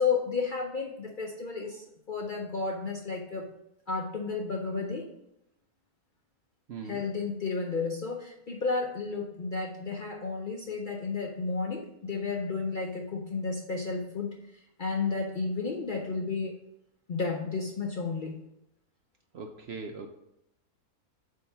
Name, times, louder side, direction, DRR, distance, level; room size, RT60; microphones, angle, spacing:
voice 1, 0.0-3.5 3.9-5.1 6.8-16.6 17.1-18.4, left 4 dB, 55° left, 1 dB, 0.6 m, -32 dB
voice 2, 6.7-7.0 19.3-20.1, right 4 dB, 65° right, 4 dB, 0.6 m, -40 dB
8.0 x 2.8 x 5.6 m, 0.83 s
omnidirectional pair, 1.5 m